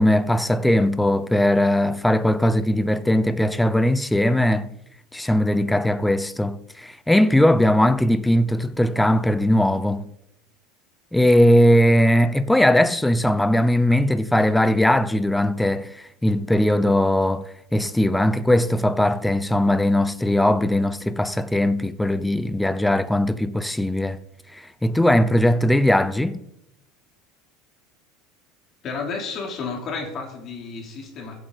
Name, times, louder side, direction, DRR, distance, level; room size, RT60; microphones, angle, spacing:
voice 1, 0.0-4.7 5.1-10.1 11.1-24.2 24.5-26.4, left 1 dB, 5° left, 0.5 m, -19 dB
voice 2, 28.8-31.4, left 4 dB, 30° left, 3.3 m, -31 dB
15.5 x 8.3 x 4.1 m
supercardioid pair, 155°, 0 cm